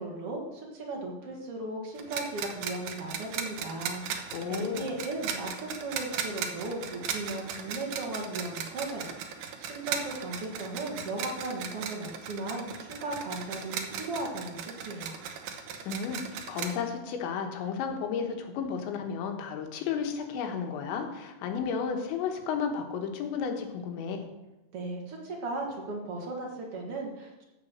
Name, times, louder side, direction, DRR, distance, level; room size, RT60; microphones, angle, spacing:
voice 1, 0.0-15.2 24.7-27.4, right 2 dB, 55° right, 0 dB, 1.6 m, -37 dB
sound 1, 2.0-16.7, right 7 dB, 80° right, 1.9 m, -37 dB
voice 2, 4.3-4.9 15.9-16.2 16.5-24.3, left 6 dB, 80° left, 4 dB, 3.6 m, -33 dB
15.0 x 5.6 x 6.5 m, 1.0 s
omnidirectional pair, 5.2 m